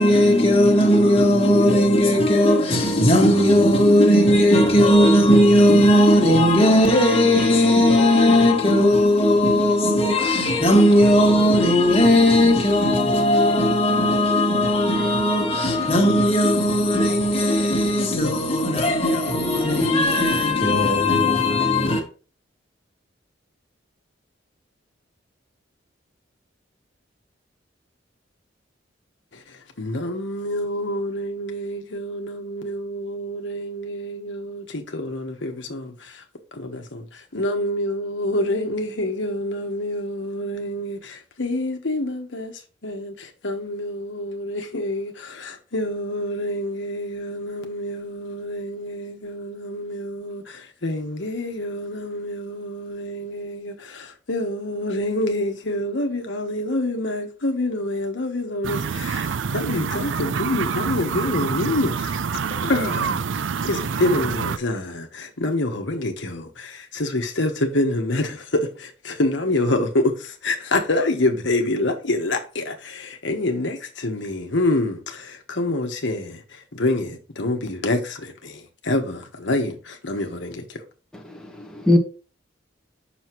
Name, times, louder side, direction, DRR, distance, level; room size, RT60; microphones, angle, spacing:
voice 1, 0.0-22.0, left 1 dB, 30° left, 1.8 m, -17 dB
voice 2, 29.3-36.2 36.5-80.8, left 1 dB, 70° left, 1.2 m, -27 dB
sound 1, 58.6-64.6, right 6 dB, 85° right, 0.5 m, -26 dB
voice 3, 81.3-82.0, left 1 dB, 5° left, 1.2 m, -20 dB
7.9 x 6.2 x 3.1 m
head